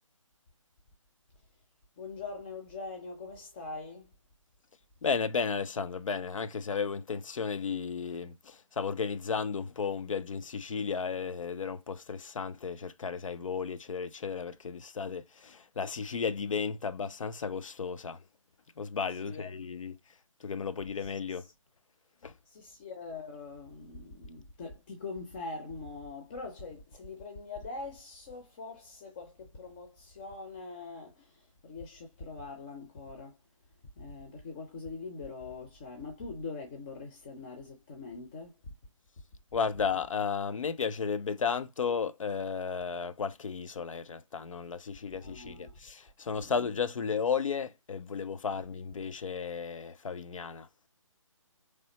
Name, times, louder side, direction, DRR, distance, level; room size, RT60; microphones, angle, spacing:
voice 1, 2.0-4.1 19.1-19.5 21.0-21.5 22.5-33.4 34.0-38.6 45.1-45.8 46.4-46.5, left 3 dB, 20° left, 0.5 m, -43 dB
voice 2, 5.0-18.2 18.8-19.9 20.4-21.4 22.2-22.3 39.5-50.7, left 6 dB, 70° left, 0.5 m, -34 dB
3.6 x 3.3 x 2.9 m
figure-of-eight pair, 155°, 17 cm